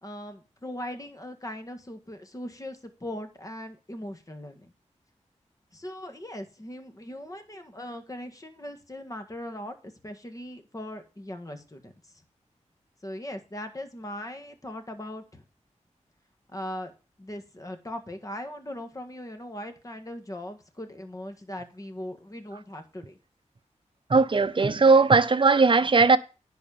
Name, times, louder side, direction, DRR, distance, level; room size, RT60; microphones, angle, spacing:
voice 1, 0.0-4.7 5.7-12.2 13.0-15.4 16.5-16.9 17.2-23.2, left 1 dB, 25° left, 1.7 m, -39 dB
voice 2, 24.1-26.2, right 4 dB, 40° right, 0.7 m, -18 dB
10.5 x 4.3 x 7.0 m
wide cardioid pair, 70°, 13 cm